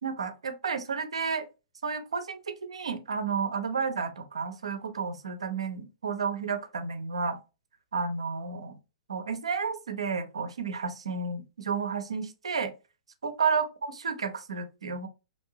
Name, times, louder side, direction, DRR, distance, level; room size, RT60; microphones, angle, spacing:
voice 1, 0.0-1.5 1.8-7.4 7.9-8.8 9.1-12.7 13.2-15.1, right 5 dB, 70° right, 0.6 m, -31 dB
3.0 x 2.6 x 2.7 m
figure-of-eight pair, 110°, 3 cm